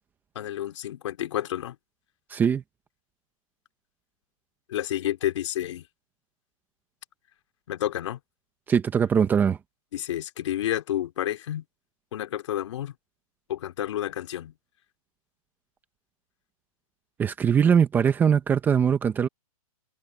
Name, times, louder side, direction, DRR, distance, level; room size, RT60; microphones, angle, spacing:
voice 1, 0.4-1.8 4.7-5.8 7.7-8.2 9.9-11.6 12.1-12.9 13.5-14.5, left 12 dB, 55° left, 3.8 m, -30 dB
voice 2, 2.3-2.6 8.7-9.6 17.2-19.3, right 7 dB, 10° right, 1.0 m, -21 dB
hypercardioid pair, 160°, 19 cm